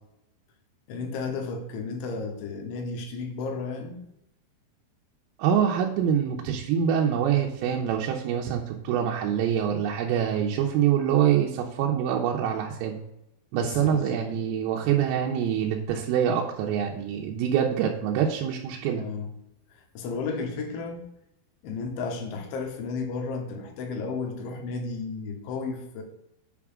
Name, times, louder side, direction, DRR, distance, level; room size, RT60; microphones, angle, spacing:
voice 1, 0.9-4.0 13.6-14.2 19.0-19.3 20.0-21.0 21.6-26.0, left 4 dB, 75° left, 3 dB, 3.4 m, -33 dB
voice 2, 5.4-13.0 13.5-19.0, right 9 dB, 90° right, 0 dB, 3.4 m, -25 dB
8.7 x 6.0 x 3.6 m, 0.82 s
omnidirectional pair, 5.7 m